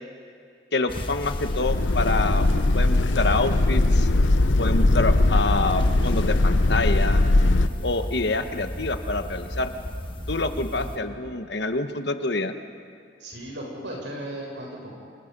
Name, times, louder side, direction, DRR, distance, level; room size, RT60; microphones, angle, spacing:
voice 1, 0.7-2.5 2.7-4.1 4.6-7.2 7.8-9.7 10.3-12.5, left 3 dB, 65° left, 7 dB, 1.3 m, -27 dB
sound 1, 0.9-11.0, equal, 25° left, 1.4 m, -34 dB
sound 2, 1.1-7.7, left 2 dB, 85° left, 0.9 m, -20 dB
voice 2, 13.2-14.9, right 1 dB, 75° right, -1 dB, 7.2 m, -36 dB
30.0 x 26.0 x 5.5 m, 2.3 s
head